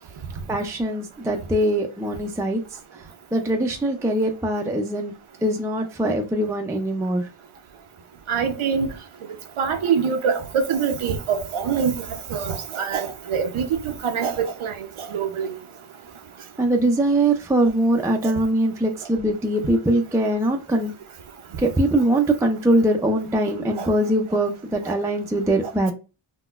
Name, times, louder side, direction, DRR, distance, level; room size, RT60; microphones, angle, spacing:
voice 1, 0.5-2.6 3.3-5.1 5.4-7.3 16.6-20.9 21.6-25.9, right 1 dB, 5° right, 0.3 m, -22 dB
voice 2, 8.3-8.9 9.6-11.9 12.3-14.7 15.1-15.6 18.2-18.3 23.8-23.9, right 6 dB, 90° right, 0.7 m, -24 dB
3.9 x 2.1 x 2.3 m
wide cardioid pair, 130°, 48 cm